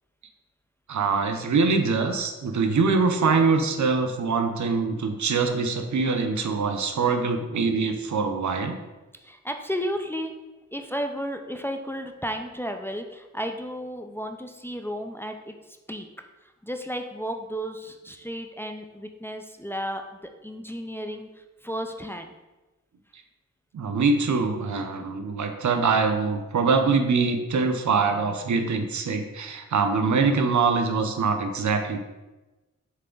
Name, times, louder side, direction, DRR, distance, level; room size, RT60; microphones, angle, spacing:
voice 1, 0.9-8.8 23.7-32.0, right 4 dB, 70° right, 6 dB, 0.7 m, -24 dB
voice 2, 9.2-10.3 10.7-16.1 16.4-22.3, equal, 5° left, 5 dB, 0.5 m, -33 dB
7.4 x 3.4 x 3.8 m, 1.1 s
cardioid pair, 75°, 30 cm